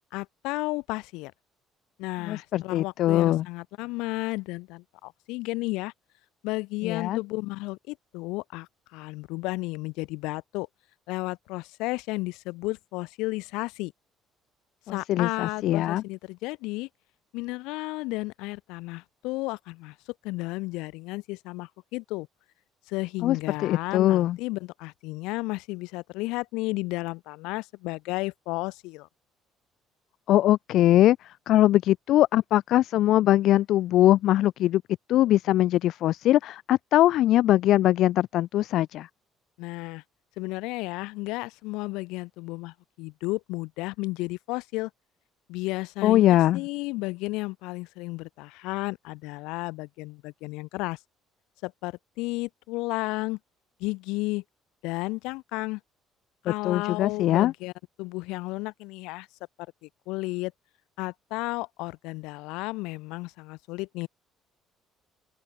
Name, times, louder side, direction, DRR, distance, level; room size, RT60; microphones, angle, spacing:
voice 1, 0.1-1.3 2.0-5.9 6.4-10.7 11.1-13.9 14.9-16.9 17.3-20.0 20.2-22.3 22.9-29.1 39.6-40.0 40.4-44.9 45.5-51.0 51.6-53.4 53.8-54.4 54.8-55.8 56.4-57.7 58.0-59.3 59.8-60.5 61.0-64.1, left 22 dB, 90° left, 5.9 m, -33 dB
voice 2, 2.2-3.5 6.8-7.2 14.9-16.0 23.2-23.4 23.6-24.4 30.3-34.8 35.1-39.1 46.0-46.6 56.5-57.5, left 14 dB, 70° left, 0.5 m, -22 dB
open air
cardioid pair, 95°, 0 cm